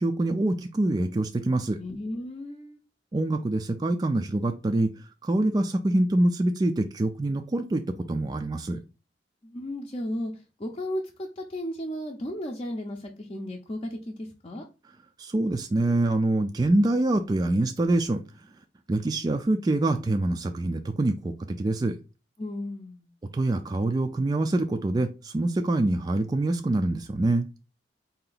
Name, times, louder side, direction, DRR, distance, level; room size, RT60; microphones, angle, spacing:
voice 1, 0.0-1.8 3.1-4.9 5.2-8.8 15.2-18.2 18.9-22.0 23.3-27.5, right 2 dB, 20° right, 5 dB, 0.3 m, -25 dB
voice 2, 1.8-2.8 9.4-14.6 22.4-23.1, left 1 dB, 30° left, 0 dB, 0.6 m, -34 dB
4.3 x 2.8 x 3.9 m, 0.31 s
head